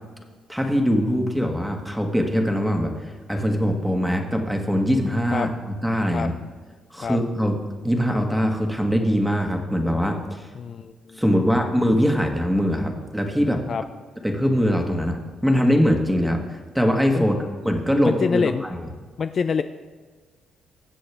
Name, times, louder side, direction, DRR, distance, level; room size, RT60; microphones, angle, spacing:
voice 1, 0.5-6.3 6.9-7.6 7.8-10.5 11.2-13.6 14.2-17.3 17.6-18.8, equal, 5° right, 3 dB, 1.5 m, -22 dB
voice 2, 10.5-11.2 13.7-13.8 17.1-17.2 18.0-18.6 19.2-19.6, left 6 dB, 50° left, 9 dB, 0.4 m, -25 dB
20.5 x 7.7 x 3.4 m, 1.4 s
cardioid pair, 90°, 0 cm